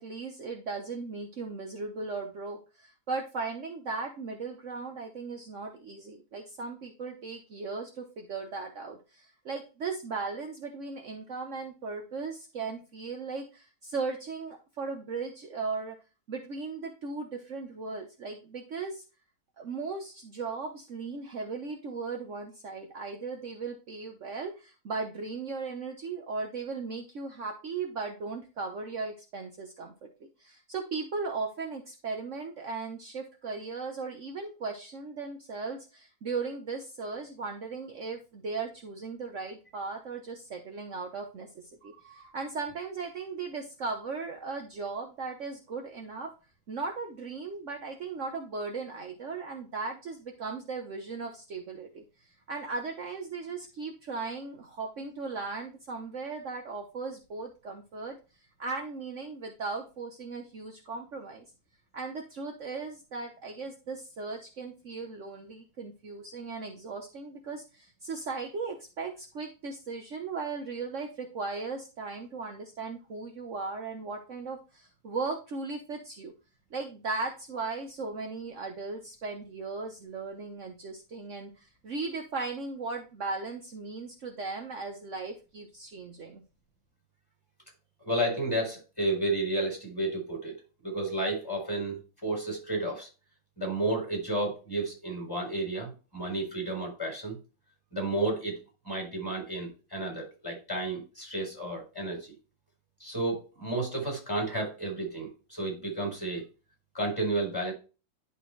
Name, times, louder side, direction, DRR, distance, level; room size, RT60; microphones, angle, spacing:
voice 1, 0.0-16.0 16.3-19.0 19.6-30.1 30.4-46.3 46.7-52.0 52.5-58.2 58.6-61.4 61.9-76.3 76.7-86.4, right 4 dB, 55° right, 2 dB, 1.3 m, -37 dB
voice 2, 88.0-90.6 90.8-93.1 93.6-97.4 97.9-98.5 98.8-102.3 103.0-106.4 106.9-107.7, right 2 dB, 15° left, -1 dB, 4.3 m, -32 dB
11.0 x 4.3 x 3.2 m, 0.31 s
omnidirectional pair, 1.6 m